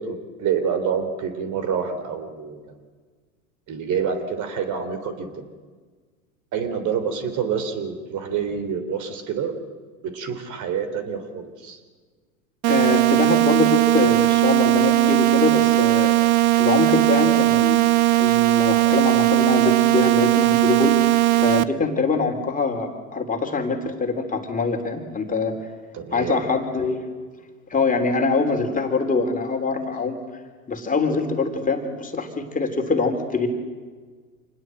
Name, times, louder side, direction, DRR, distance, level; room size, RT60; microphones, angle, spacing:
voice 1, 0.0-2.7 3.7-5.5 6.5-9.6 10.0-11.8 25.9-26.5, right 6 dB, 40° right, 9 dB, 3.5 m, -27 dB
sound 1, 12.6-21.6, right 17 dB, 70° right, 1.1 m, -18 dB
voice 2, 12.7-16.1 16.5-17.8 18.1-21.1 21.4-25.5 26.1-27.0 27.7-30.2 30.7-33.5, left 4 dB, 20° left, 4 dB, 3.5 m, -24 dB
27.0 x 20.0 x 7.8 m, 1.5 s
hypercardioid pair, 90°, 44 cm